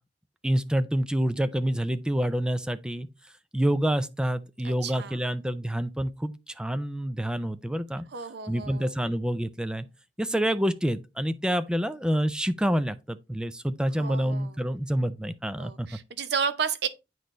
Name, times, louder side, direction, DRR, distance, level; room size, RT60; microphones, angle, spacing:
voice 1, 0.4-3.1 3.5-8.1 8.5-9.9 10.2-16.0, equal, 5° right, 0.4 m, -27 dB
voice 2, 4.6-5.2 8.1-8.9 13.9-14.6 15.6-16.9, right 6 dB, 65° right, 0.7 m, -32 dB
9.2 x 4.2 x 3.2 m
head